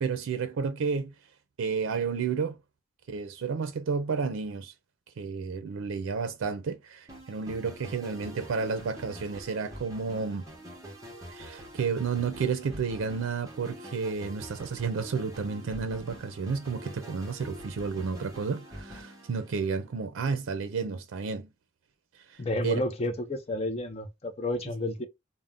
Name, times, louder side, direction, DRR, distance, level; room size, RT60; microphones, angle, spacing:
voice 1, 0.0-1.1 1.6-2.6 3.1-4.7 5.2-10.4 11.3-21.5 22.3-22.8, right 5 dB, 90° right, 0.4 m, -31 dB
sound 1, 7.1-20.0, equal, 15° right, 0.8 m, -46 dB
voice 2, 22.4-25.1, left 1 dB, 30° left, 0.4 m, -31 dB
2.5 x 2.0 x 3.4 m
head